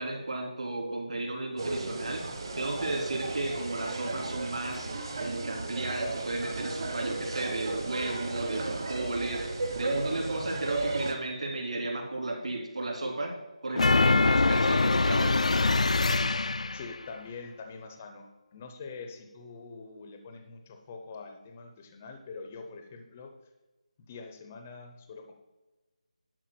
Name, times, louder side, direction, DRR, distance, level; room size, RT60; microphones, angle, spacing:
voice 1, 0.0-2.2 2.6-4.9 5.2-13.3 13.6-15.4, right 2 dB, 55° right, 1 dB, 3.1 m, -34 dB
sound 1, 1.6-11.1, right 3 dB, 35° right, 1.2 m, -34 dB
sound 2, 13.8-17.0, left 3 dB, 65° left, 0.4 m, -24 dB
voice 2, 16.7-23.3 24.1-25.3, left 4 dB, 15° left, 5 dB, 0.6 m, -44 dB
11.0 x 4.7 x 7.7 m, 1.1 s
figure-of-eight pair, 175°, 4 cm